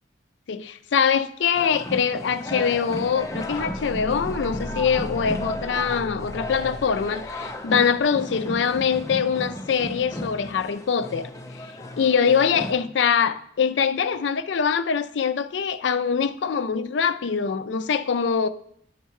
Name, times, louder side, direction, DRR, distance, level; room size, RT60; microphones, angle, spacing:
voice 1, 0.5-11.7 12.0-18.5, left 6 dB, 80° left, 0.4 m, -23 dB
sound 1, 1.5-12.7, left 1 dB, 20° left, 0.7 m, -35 dB
Car / Engine, 3.1-7.6, left 1 dB, 40° left, 1.3 m, -38 dB
10.0 x 4.4 x 4.7 m
head